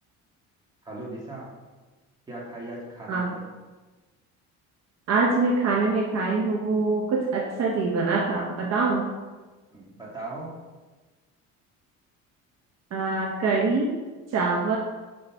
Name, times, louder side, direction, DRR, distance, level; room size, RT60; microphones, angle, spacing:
voice 1, 0.8-1.5 2.3-3.4 9.7-10.6, right 2 dB, 15° right, -5 dB, 2.0 m, -38 dB
voice 2, 5.1-9.1 12.9-13.9 14.3-14.8, right 3 dB, 55° right, -1 dB, 1.0 m, -24 dB
5.4 x 3.9 x 5.7 m, 1.3 s
cardioid pair, 115°, 31 cm